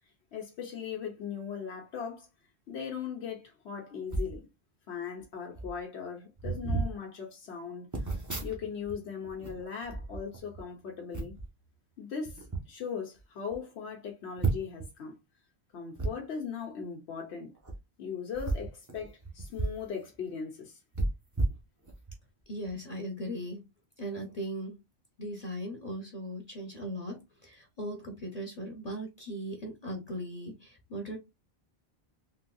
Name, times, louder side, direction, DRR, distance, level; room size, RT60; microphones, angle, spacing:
voice 1, 0.3-2.3 2.7-4.4 4.9-7.9 8.4-11.3 12.0-15.2 15.7-17.5 18.0-20.8, left 6 dB, 90° left, 1.1 m, -39 dB
sound 1, 4.1-4.4 5.2-5.3 5.5-5.8 6.4-6.9 7.9-9.0 9.2-10.6 11.1-11.5 12.2-12.6 13.2-13.3 13.5-13.6 14.4-14.9 15.9-16.1 17.6-17.7 18.3-19.8 20.1-20.2 20.9-22.2 22.6-22.8, right 3 dB, 20° right, 0.7 m, -33 dB
voice 2, 22.5-23.6 24.0-24.8 25.2-31.2, equal, 40° left, 0.8 m, -38 dB
3.8 x 2.6 x 2.3 m
omnidirectional pair, 1.1 m